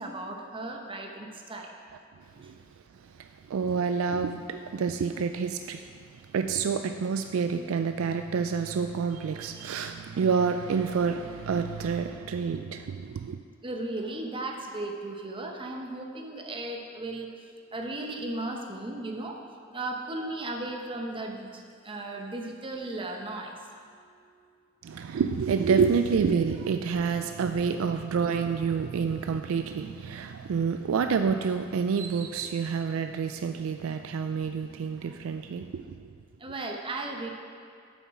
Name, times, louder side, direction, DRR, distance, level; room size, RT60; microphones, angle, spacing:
voice 1, 0.0-1.7 13.6-17.3 17.7-19.4 19.7-23.6 36.4-37.3, right 2 dB, 25° right, 2 dB, 0.8 m, -36 dB
voice 2, 3.2-5.8 6.3-13.4 24.8-36.1, right 6 dB, 75° right, 7 dB, 0.3 m, -28 dB
8.2 x 7.1 x 4.8 m, 2.2 s
head